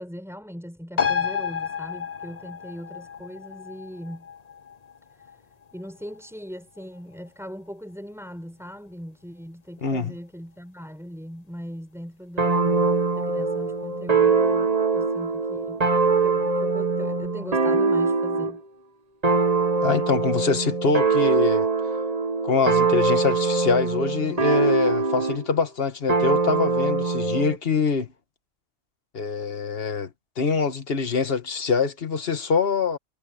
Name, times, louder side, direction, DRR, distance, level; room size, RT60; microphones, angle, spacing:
voice 1, 0.0-4.3 5.2-5.3 5.7-15.8 16.2-18.6, equal, ahead, 7.7 m, -39 dB
sound 1, 1.0-7.9 8.3-8.4, left 7 dB, 40° left, 0.9 m, -32 dB
voice 2, 9.8-10.1 19.8-21.7 22.4-28.1 29.1-30.1 30.4-33.0, left 5 dB, 55° left, 1.8 m, -24 dB
sound 2, 12.4-18.6 19.2-25.5 26.1-27.6, right 4 dB, 35° right, 1.3 m, -22 dB
omnidirectional pair, 1.2 m